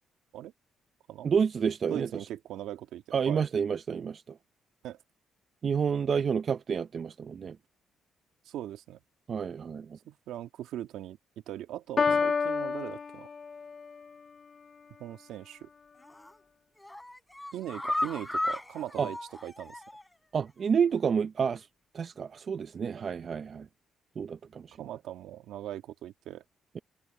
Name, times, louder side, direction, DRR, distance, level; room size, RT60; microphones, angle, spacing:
voice 1, 1.2-2.1 3.1-4.2 5.6-7.6 9.3-10.0 12.1-12.2 19.0-19.1 20.3-21.7 21.9-23.7 24.2-24.8 26.7-26.8, right 6 dB, 50° right, 0.7 m, -29 dB
voice 2, 1.9-3.5 4.8-5.0 8.5-9.0 10.1-11.2 11.5-13.3 15.0-15.7 17.5-19.2 19.4-19.8 24.8-26.4, right 12 dB, 85° right, 2.2 m, -40 dB
Piano, 12.0-13.9, left 5 dB, 40° left, 0.6 m, -29 dB
sound 1, 16.0-16.4 16.8-20.2 20.5-20.6 20.9-21.0, left 1 dB, 10° left, 4.7 m, -35 dB
cardioid pair, 90°, 0 cm